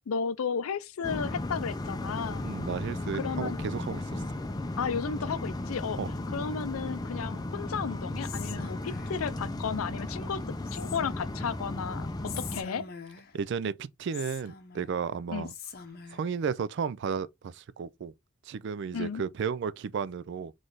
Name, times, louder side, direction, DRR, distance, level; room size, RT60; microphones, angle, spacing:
voice 1, 0.1-2.5 3.1-3.6 4.8-6.0 6.3-10.4 10.7-12.1 12.5-12.8 15.3-15.5 18.9-19.2, left 6 dB, 80° left, 0.5 m, -33 dB
sound 1, 1.0-12.6, left 1 dB, 20° left, 0.4 m, -35 dB
voice 2, 2.4-4.2 6.0-6.1 12.8-12.9 13.3-15.5 16.1-18.1 18.5-20.5, right 6 dB, 55° right, 0.3 m, -33 dB
Whispering, 8.2-9.3 10.6-11.3 12.2-13.4 14.1-15.0 15.5-16.3, left 7 dB, 45° left, 0.8 m, -44 dB
4.0 x 3.2 x 3.8 m
head